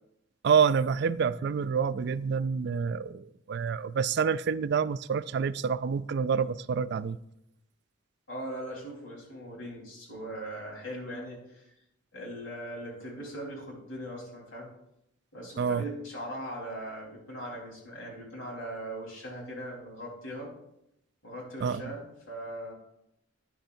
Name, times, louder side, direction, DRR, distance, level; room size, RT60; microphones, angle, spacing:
voice 1, 0.4-7.2 15.6-15.8 21.6-21.8, right 6 dB, 55° right, 0.3 m, -27 dB
voice 2, 8.3-11.7 12.1-14.7 15.3-20.5 21.2-22.7, right 1 dB, 80° left, 4.1 m, -40 dB
13.5 x 9.4 x 2.7 m
head